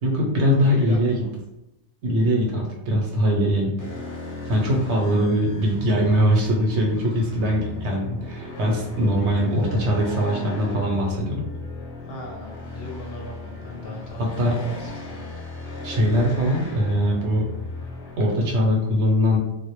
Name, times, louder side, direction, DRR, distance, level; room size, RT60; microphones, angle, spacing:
voice 1, 0.0-1.3 2.0-3.8 4.5-11.4 14.2-14.6 15.8-17.5 18.2-19.4, equal, 75° right, 0 dB, 0.9 m, -21 dB
voice 2, 0.6-1.3 12.1-14.8 15.1-15.2, left 1 dB, 65° left, -1 dB, 0.7 m, -37 dB
sound 1, 3.8-18.6, left 2 dB, 20° left, 0.5 m, -36 dB
2.1 x 2.0 x 2.9 m, 0.90 s
omnidirectional pair, 1.2 m